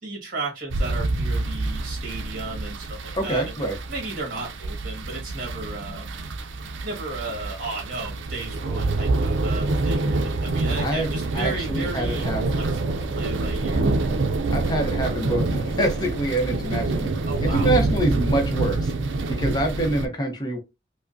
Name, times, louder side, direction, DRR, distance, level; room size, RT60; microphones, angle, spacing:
voice 1, 0.0-3.5 3.9-6.1 6.8-12.3 12.5-13.9 17.2-17.7, right 3 dB, 45° right, 0 dB, 1.4 m, -34 dB
sound 1, 0.7-20.1, right 2 dB, 80° right, 0.5 m, -26 dB
voice 2, 3.1-3.8 10.8-11.1 11.3-12.7 14.5-17.1 17.4-18.9 19.3-20.6, right 1 dB, 20° left, 3 dB, 0.7 m, -26 dB
4.8 x 2.1 x 2.5 m, 0.25 s
head